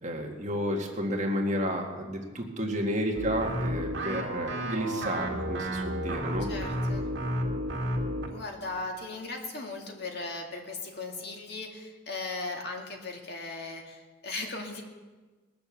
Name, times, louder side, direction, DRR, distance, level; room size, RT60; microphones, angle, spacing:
voice 1, 0.0-6.5, equal, 35° right, 1 dB, 1.8 m, -31 dB
sound 1, 3.1-8.4, equal, 60° right, 2.1 m, -32 dB
voice 2, 6.5-7.0 8.3-14.8, left 3 dB, 50° left, 1 dB, 2.2 m, -37 dB
21.0 x 7.0 x 7.1 m, 1.3 s
head